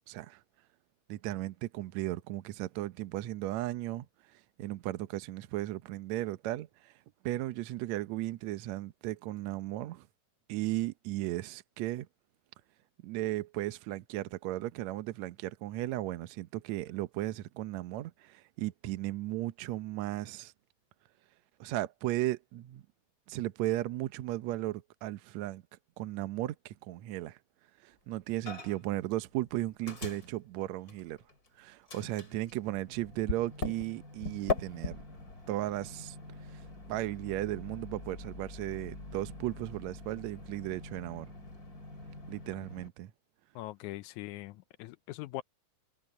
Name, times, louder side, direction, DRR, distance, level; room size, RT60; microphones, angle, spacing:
voice 1, 0.1-0.4 1.1-4.1 4.3-6.9 7.2-10.1 10.5-12.1 13.0-20.5 21.6-22.8 23.3-25.6 26.0-27.4 27.8-31.2 31.6-35.0 35.5-36.2 36.5-41.3 42.3-43.1, right 16 dB, 70° right, 1.9 m, -36 dB
Microwave oven, 28.5-28.9 29.2-31.5 31.9-42.9, left 3 dB, 25° left, 3.8 m, -42 dB
voice 2, 43.6-45.4, left 17 dB, 80° left, 1.8 m, -41 dB
omnidirectional pair, 3.8 m